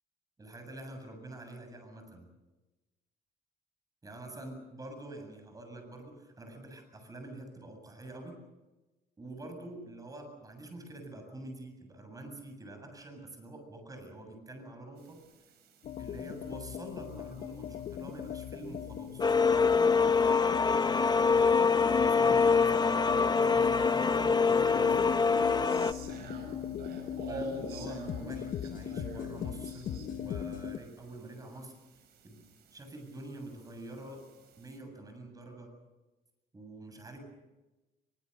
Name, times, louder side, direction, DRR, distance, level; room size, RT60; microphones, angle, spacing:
voice 1, 0.4-2.3 4.0-8.3 9.2-15.2 16.0-19.2 21.6-25.1 27.3-31.7 32.2-32.4 32.7-34.3 34.6-35.7 36.5-37.2, right 2 dB, 20° right, 5 dB, 7.6 m, -46 dB
sound 1, 15.0-34.8, right 3 dB, 70° right, 6.2 m, -50 dB
sound 2, 15.8-30.8, left 10 dB, 55° left, 1.2 m, -40 dB
sound 3, 19.2-25.9, left 5 dB, 25° left, 0.9 m, -25 dB
23.0 x 22.5 x 6.8 m, 1.1 s
cardioid pair, 110°, 17 cm